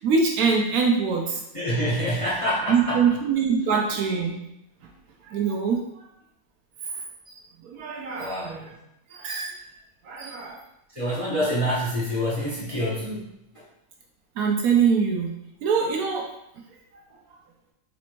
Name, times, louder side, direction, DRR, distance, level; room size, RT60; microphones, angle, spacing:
voice 1, 0.0-1.4 2.7-4.4 4.8-4.9 5.2-6.1 6.9-7.0 7.3-8.8 9.1-9.6 10.0-10.6 11.1-11.2 14.4-16.3, right 5 dB, 70° right, 1 dB, 1.0 m, -24 dB
voice 2, 1.5-3.0 8.2-8.5 10.9-13.3, equal, 30° left, -7 dB, 0.7 m, -26 dB
4.1 x 2.6 x 3.0 m, 0.83 s
omnidirectional pair, 1.7 m